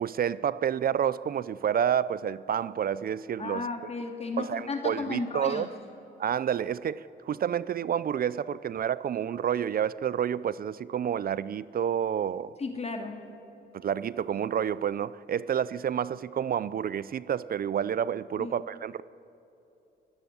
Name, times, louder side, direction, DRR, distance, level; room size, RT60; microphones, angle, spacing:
voice 1, 0.0-3.6 4.4-5.7 6.2-12.5 13.7-19.0, right 9 dB, 50° right, 0.5 m, -29 dB
voice 2, 3.4-5.7 12.6-13.3 18.4-18.5, left 3 dB, 30° left, 2.3 m, -34 dB
25.5 x 14.5 x 9.7 m
cardioid pair, 90°, 20 cm